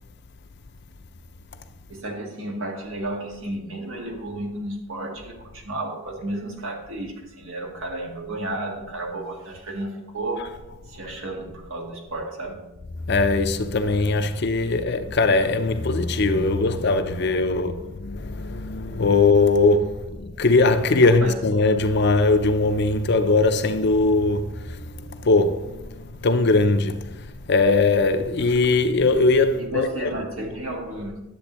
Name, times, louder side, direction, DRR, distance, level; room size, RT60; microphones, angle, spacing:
voice 1, 1.9-10.6 10.9-12.7 16.6-16.7 17.1-17.7 18.8-19.8 21.0-21.4 29.5-31.2, right 1 dB, 80° right, 1.6 m, -33 dB
voice 2, 13.0-30.1, left 3 dB, 55° left, 0.6 m, -20 dB
10.5 x 7.5 x 3.0 m
head